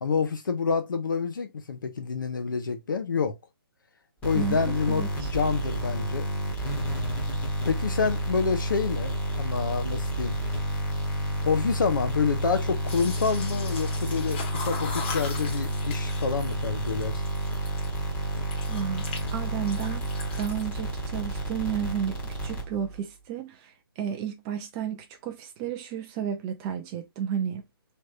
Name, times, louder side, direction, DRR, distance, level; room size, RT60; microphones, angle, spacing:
voice 1, 0.0-3.4 4.2-6.3 7.7-10.4 11.4-17.2, left 5 dB, 55° left, 1.0 m, -28 dB
sound 1, 4.2-23.0, right 1 dB, 10° left, 1.2 m, -30 dB
voice 2, 4.3-5.3 18.7-19.0 19.3-20.1 20.4-27.6, right 8 dB, 10° right, 0.5 m, -32 dB
sound 2, 12.9-18.0 18.3-19.3 19.6-20.8, left 4 dB, 30° left, 1.3 m, -39 dB
3.3 x 3.1 x 2.5 m
hypercardioid pair, 160°, 12 cm